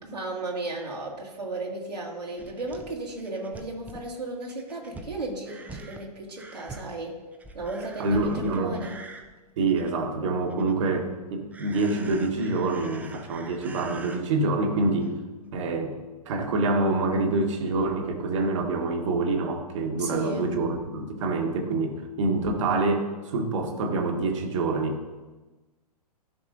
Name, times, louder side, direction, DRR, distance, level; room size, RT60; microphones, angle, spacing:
voice 1, 0.0-7.2 7.5-8.9 20.0-20.5, right 2 dB, 80° right, -2 dB, 2.1 m, -34 dB
sound 1, 2.2-10.1 10.4-11.0 11.5-14.2 15.0-15.1 15.5-15.6, right 3 dB, 5° right, 0.5 m, -45 dB
voice 2, 8.0-8.8 9.6-15.2 15.5-16.0 16.2-25.0, right 3 dB, 50° right, 4 dB, 1.4 m, -26 dB
13.5 x 6.1 x 2.6 m, 1.2 s
figure-of-eight pair, 110°, 21 cm